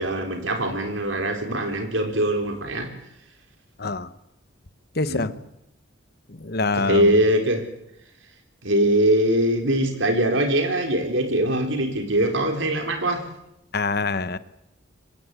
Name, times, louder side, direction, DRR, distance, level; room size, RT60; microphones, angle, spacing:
voice 1, 0.0-2.9 5.0-5.3 6.7-7.7 8.6-13.2, right 1 dB, 70° right, 5 dB, 4.0 m, -22 dB
voice 2, 5.0-5.3 6.4-7.1 13.7-14.4, left 3 dB, 50° left, 14 dB, 1.1 m, -25 dB
24.5 x 19.5 x 8.3 m, 0.81 s
head